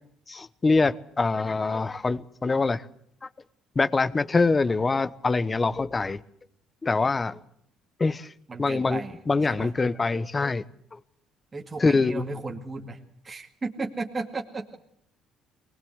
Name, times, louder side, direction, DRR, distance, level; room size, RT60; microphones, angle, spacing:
voice 1, 0.3-2.8 3.2-3.3 3.7-6.2 6.8-7.4 8.0-8.3 8.6-10.6 10.9-11.0 11.8-12.2, left 3 dB, 20° left, 1.0 m, -24 dB
voice 2, 8.5-9.2 9.5-9.7 11.5-13.0 13.2-14.8, right 3 dB, 20° right, 2.1 m, -34 dB
23.5 x 19.5 x 8.0 m
cardioid pair, 125°, 0 cm